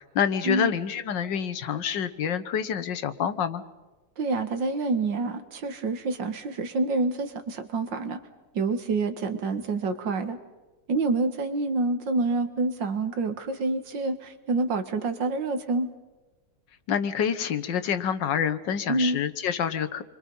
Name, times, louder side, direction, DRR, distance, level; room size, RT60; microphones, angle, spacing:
voice 1, 0.0-3.6 16.9-20.0, left 8 dB, 80° left, 11 dB, 1.8 m, -27 dB
voice 2, 4.2-8.2 8.5-10.4 10.9-15.9 18.9-19.2, right 3 dB, 85° right, 9 dB, 2.2 m, -27 dB
29.5 x 24.5 x 5.5 m, 1.2 s
omnidirectional pair, 1.9 m